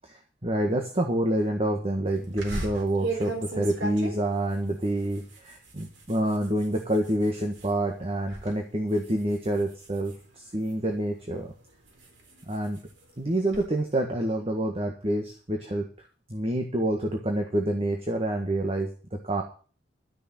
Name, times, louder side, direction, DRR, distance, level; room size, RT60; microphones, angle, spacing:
voice 1, 0.0-11.5 12.5-12.8 13.2-15.9 16.3-19.4, right 1 dB, 35° right, 3 dB, 1.6 m, -27 dB
sound 1, 2.4-7.7 8.1-8.5 8.9-10.9 11.5-13.7, right 2 dB, 85° right, 3.9 m, -38 dB
12.0 x 6.8 x 8.6 m, 0.40 s
head